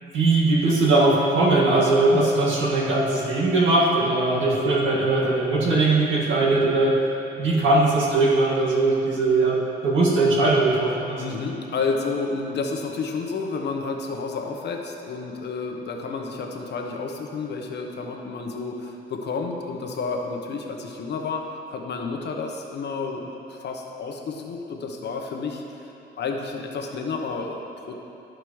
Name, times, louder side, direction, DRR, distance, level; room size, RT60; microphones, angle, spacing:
voice 1, 0.0-7.0 7.4-11.2, right 2 dB, 75° right, -5 dB, 1.9 m, -20 dB
voice 2, 11.2-21.4 21.7-25.6 26.2-28.0, left 4 dB, 60° left, 2 dB, 0.9 m, -30 dB
13.0 x 5.0 x 3.1 m, 2.8 s
cardioid pair, 90°, 20 cm